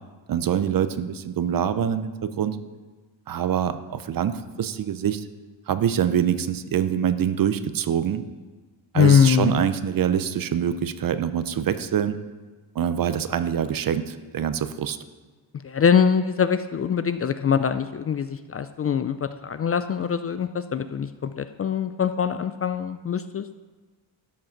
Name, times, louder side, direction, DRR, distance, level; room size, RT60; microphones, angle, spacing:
voice 1, 0.3-2.6 3.3-5.2 5.7-8.2 8.9-12.2 12.8-15.0, right 9 dB, 50° right, 12 dB, 0.7 m, -25 dB
voice 2, 8.9-9.7 15.6-23.5, left 7 dB, 35° left, 11 dB, 0.4 m, -23 dB
12.5 x 7.6 x 5.9 m, 1.3 s
cardioid pair, 115°, 46 cm